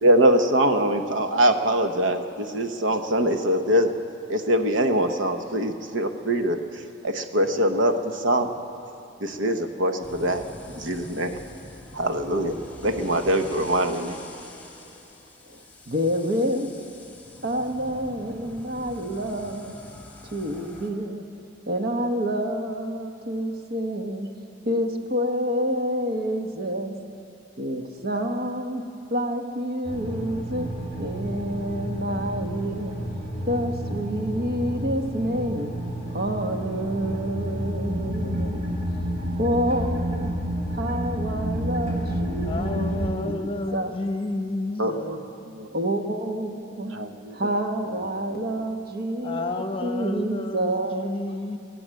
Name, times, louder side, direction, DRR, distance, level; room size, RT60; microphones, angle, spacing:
voice 1, 0.0-3.9 4.3-8.5 9.2-10.4 10.7-11.4 11.9-12.6 12.8-14.2 44.8-45.2 45.6-45.7 46.9-47.5 48.3-48.5, right 1 dB, 90° right, 6 dB, 1.0 m, -23 dB
sound 1, 10.0-20.9, left 1 dB, 10° left, 1.8 m, -44 dB
voice 2, 15.5-16.7 17.4-19.8 20.3-21.2 21.7-24.3 24.6-26.9 27.6-28.8 29.1-30.7 31.0-33.0 33.4-35.7 36.1-38.7 39.4-40.3 40.7-44.0 45.7-46.9 47.3-51.2, equal, 55° right, 4 dB, 1.2 m, -28 dB
sound 2, 29.8-43.1, equal, 35° right, 3.4 m, -30 dB
voice 3, 42.4-45.2 49.2-51.6, left 2 dB, 30° left, 6 dB, 1.0 m, -31 dB
19.5 x 9.7 x 7.7 m, 2.7 s
head